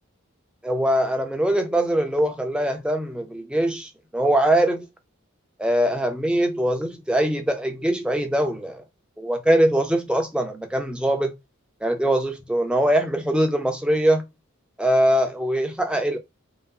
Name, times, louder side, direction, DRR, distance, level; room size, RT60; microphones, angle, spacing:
voice 1, 0.6-4.9 5.6-8.8 9.2-11.4 11.8-14.2 14.8-16.2, right 1 dB, 5° right, 0.5 m, -22 dB
2.7 x 2.0 x 3.6 m
head